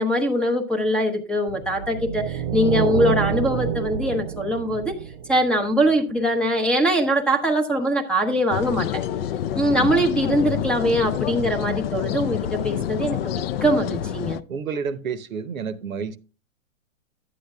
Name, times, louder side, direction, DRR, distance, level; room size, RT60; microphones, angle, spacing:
voice 1, 0.0-5.0 5.3-9.0 9.5-14.4, equal, ahead, 0.6 m, -22 dB
sound 1, 1.5-5.9, right 9 dB, 45° right, 0.5 m, -27 dB
sound 2, 8.5-14.4, left 10 dB, 50° left, 0.4 m, -27 dB
voice 2, 9.5-10.1 14.5-16.2, right 5 dB, 85° right, 0.9 m, -30 dB
11.5 x 8.4 x 2.3 m
hypercardioid pair, 120°, 40 cm